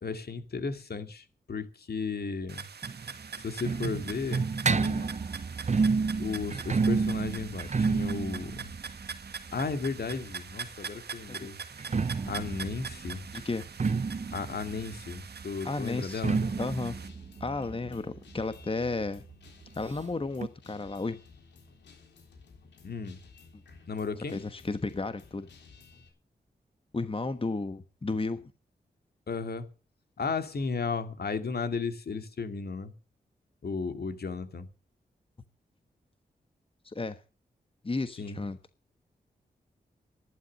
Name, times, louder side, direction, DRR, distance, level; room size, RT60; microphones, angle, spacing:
voice 1, 0.0-2.7 3.4-5.1 5.8-5.9 6.2-8.7 9.5-11.6 12.2-13.2 14.3-16.4 22.8-23.2 23.9-24.4 29.3-29.7 30.2-32.9 33.6-34.7 38.2-38.4, left 4 dB, 65° left, 2.3 m, -34 dB
sound 1, 2.5-17.1, right 6 dB, 70° right, 1.6 m, -43 dB
sound 2, 2.8-10.5 11.6-19.0 19.3-19.4 19.6-19.7 20.4-20.5, right 4 dB, 40° right, 0.8 m, -31 dB
voice 2, 15.6-16.2 16.6-16.9 17.4-19.2 19.8-21.2 24.3-25.5 26.9-28.5 36.8-37.2 37.8-38.6, left 3 dB, 30° left, 1.2 m, -33 dB
Guitar, 16.4-26.1, left 4 dB, 90° left, 3.7 m, -54 dB
12.0 x 11.0 x 6.5 m
cardioid pair, 45°, 18 cm